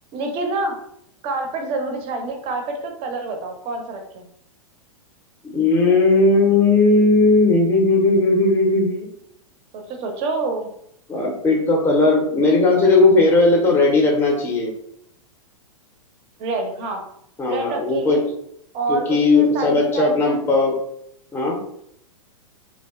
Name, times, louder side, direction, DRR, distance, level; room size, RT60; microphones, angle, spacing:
voice 1, 0.1-0.8 1.2-4.3 9.7-10.7 16.4-17.0 17.5-18.3 18.7-20.4, right 3 dB, 30° right, 4 dB, 0.5 m, -27 dB
voice 2, 5.4-9.1 11.1-14.7 17.4-18.2 18.9-20.7 21.3-21.6, left 3 dB, 15° left, 0 dB, 0.5 m, -17 dB
2.5 x 2.2 x 2.3 m, 0.71 s
figure-of-eight pair, 105°, 18 cm